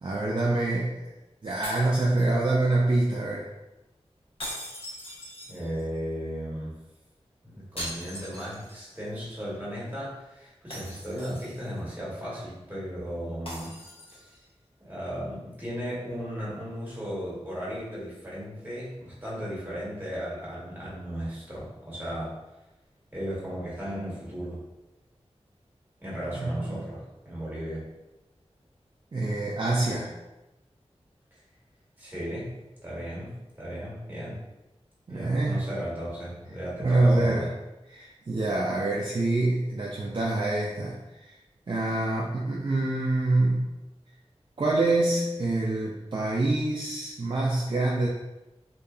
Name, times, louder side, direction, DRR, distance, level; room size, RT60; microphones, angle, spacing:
voice 1, 0.0-1.1 1.4-3.5 26.3-26.8 29.1-30.1 35.1-35.7 36.8-37.5 37.9-41.4 41.7-43.7 44.6-48.1, right 2 dB, 45° right, -4 dB, 0.4 m, -26 dB
sound 1, 1.6-2.7 4.4-6.0 7.8-9.0 9.3-9.4 10.7-11.8 13.5-14.4, equal, 55° left, 0.9 m, -40 dB
voice 2, 5.5-6.8 7.4-13.8 14.1-14.3 14.8-22.4 23.1-24.6 26.0-27.9 32.0-32.5 32.8-34.4 35.1-37.5, equal, 15° right, -8 dB, 1.3 m, -35 dB
2.8 x 2.3 x 2.4 m, 1.0 s
wide cardioid pair, 50°, 11 cm